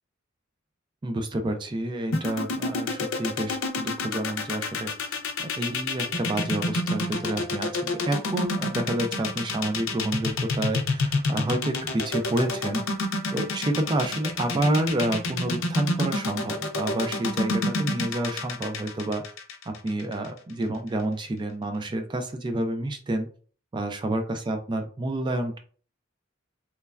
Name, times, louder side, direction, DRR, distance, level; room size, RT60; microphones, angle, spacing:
voice 1, 1.0-12.8 13.3-19.2 19.7-23.3 23.7-25.6, right 1 dB, 25° right, 6 dB, 0.3 m, -29 dB
sound 1, 2.1-20.3, left 2 dB, 85° left, 0.5 m, -28 dB
3.2 x 2.2 x 2.3 m, 0.42 s
head